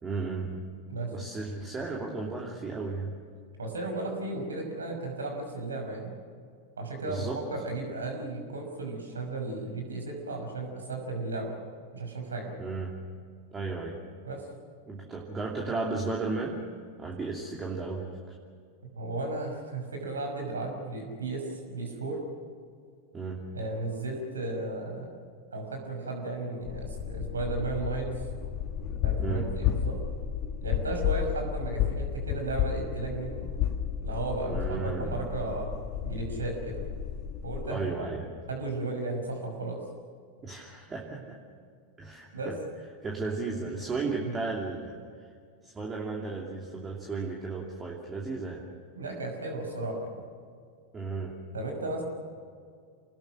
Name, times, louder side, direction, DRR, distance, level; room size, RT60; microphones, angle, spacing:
voice 1, 0.0-0.6 1.1-3.2 7.1-7.4 12.6-13.0 13.5-14.0 14.9-16.6 17.0-18.3 23.1-23.5 29.2-29.5 34.5-35.2 37.6-38.3 40.4-41.4 42.0-42.5 43.0-45.0 45.6-48.6 50.9-51.4, right 3 dB, 15° right, -1 dB, 2.8 m, -34 dB
voice 2, 3.6-6.2 6.8-11.5 11.9-12.5 14.2-14.5 19.0-22.2 23.5-25.2 25.5-28.2 29.0-30.0 30.6-33.5 34.0-35.7 36.0-36.9 37.4-38.1 38.5-39.8 42.3-42.5 44.2-44.4 48.9-50.3 51.5-52.0, right 2 dB, 70° right, 3 dB, 5.8 m, -34 dB
sound 1, 26.6-37.7, left 9 dB, 40° left, 1.5 m, -32 dB
28.5 x 19.5 x 6.5 m, 2.2 s
figure-of-eight pair, 90°, 0 cm